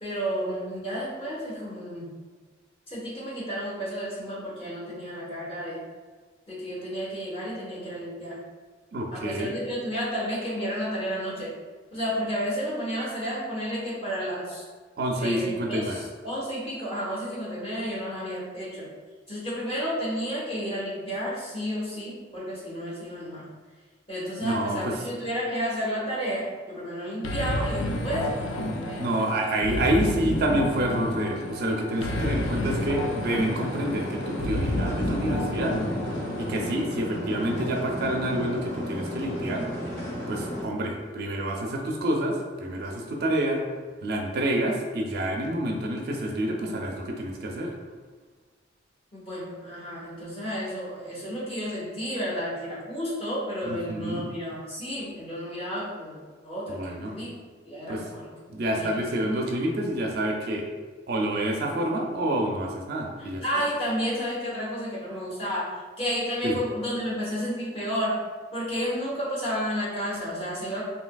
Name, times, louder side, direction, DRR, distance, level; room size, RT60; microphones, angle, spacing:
voice 1, 0.0-2.1 2.9-5.8 6.5-8.4 9.1-11.5 11.9-14.7 15.1-18.9 19.3-23.5 24.1-29.1 49.1-57.3 57.6-58.3 58.7-58.9 63.2-68.2 68.5-70.8, equal, 30° left, -7 dB, 1.0 m, -31 dB
voice 2, 8.9-9.5 15.0-16.0 24.4-24.9 29.0-35.8 36.4-39.7 40.3-43.6 44.0-47.7 53.6-54.3 56.7-57.1 57.9-58.0 58.5-60.7 61.1-63.4 66.4-66.6, right 1 dB, 55° right, 1 dB, 0.4 m, -28 dB
sound 1, 27.2-36.8, left 1 dB, 85° left, 0.4 m, -30 dB
sound 2, 31.9-40.6, equal, 10° left, 1.2 m, -34 dB
3.2 x 2.7 x 2.2 m, 1.5 s
head